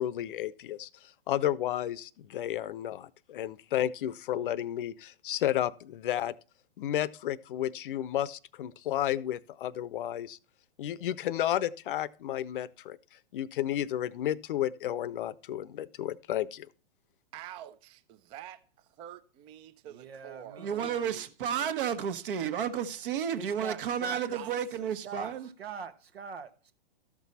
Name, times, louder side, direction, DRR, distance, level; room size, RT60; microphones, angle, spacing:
voice 1, 0.0-6.3 6.8-10.4 10.8-13.0 13.3-16.7, left 12 dB, 60° left, 0.6 m, -32 dB
voice 2, 17.3-20.7 24.3-24.5, right 11 dB, 20° right, 0.4 m, -47 dB
voice 3, 19.8-21.3 23.4-24.4 25.0-26.7, right 5 dB, 90° right, 1.3 m, -43 dB
voice 4, 20.6-25.5, right 8 dB, 60° right, 1.3 m, -32 dB
13.5 x 6.1 x 4.1 m
hypercardioid pair, 125°, 30 cm